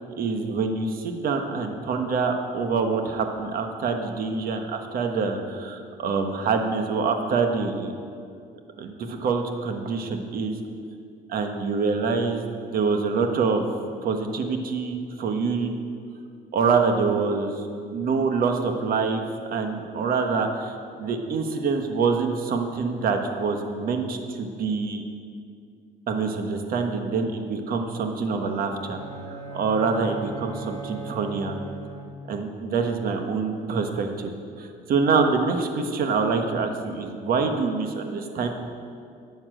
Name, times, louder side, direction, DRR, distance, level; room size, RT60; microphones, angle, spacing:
voice 1, 0.2-7.9 8.8-10.6 11.3-12.4 12.7-13.7 14.0-15.7 16.5-17.5 17.9-19.2 19.5-20.7 21.0-25.0 26.1-29.0 29.3-31.5 32.3-34.3 34.6-38.5, right 4 dB, 60° right, 5 dB, 1.4 m, -25 dB
Bowed string instrument, 28.7-32.4, right 3 dB, 30° right, 2.2 m, -38 dB
11.0 x 7.3 x 7.7 m, 2.3 s
cardioid pair, 110°, 17 cm